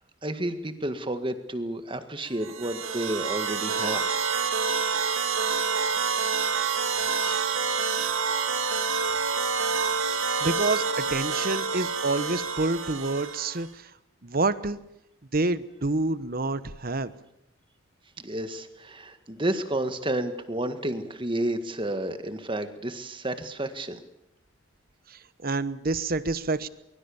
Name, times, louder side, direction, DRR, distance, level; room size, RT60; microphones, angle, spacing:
voice 1, 0.2-4.2 18.2-24.0, right 1 dB, 25° right, 9 dB, 1.8 m, -31 dB
sound 1, 2.4-13.7, right 5 dB, 70° right, 2.1 m, -27 dB
voice 2, 10.4-13.9 14.2-14.8 15.3-17.1 25.1-26.7, right 3 dB, 45° right, 15 dB, 1.1 m, -28 dB
24.0 x 22.5 x 7.2 m, 0.82 s
head